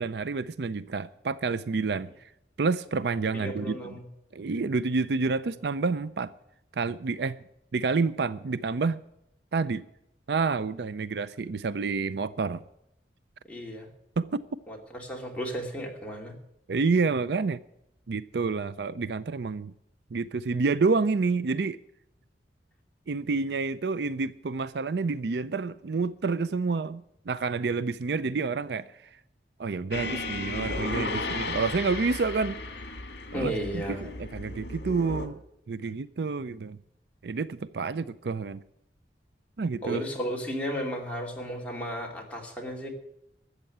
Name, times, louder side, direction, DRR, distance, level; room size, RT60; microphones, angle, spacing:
voice 1, 0.0-2.3 2.6-4.0 4.3-6.3 6.7-7.4 7.7-9.0 9.5-9.9 10.3-12.6 14.2-14.4 16.7-17.6 18.1-19.7 20.1-21.8 23.1-29.0 29.6-32.9 33.3-35.4 35.7-36.8 37.2-38.6 39.6-40.0, right 4 dB, 65° right, 0.5 m, -29 dB
voice 2, 3.3-4.0 13.4-13.9 14.7-16.3 33.3-34.1 39.8-42.9, equal, 10° left, 2.7 m, -34 dB
sound 1, 29.9-35.3, left 3 dB, 65° left, 1.9 m, -34 dB
13.5 x 8.3 x 8.6 m
head